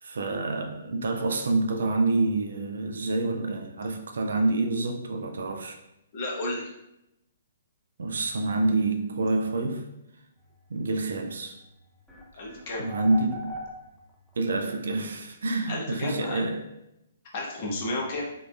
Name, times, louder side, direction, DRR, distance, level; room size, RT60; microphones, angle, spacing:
voice 1, 0.0-5.8 8.0-9.9 10.7-11.6 12.4-13.5 14.4-16.6, right 2 dB, 70° right, 0.4 m, -27 dB
voice 2, 6.1-6.7 12.4-12.9 15.7-16.4 17.3-18.2, left 2 dB, 45° left, 0.8 m, -32 dB
sound 1, 11.5-11.6 12.1-14.4, equal, ahead, 0.5 m, -40 dB
3.6 x 2.4 x 2.3 m
figure-of-eight pair, 125°, 0 cm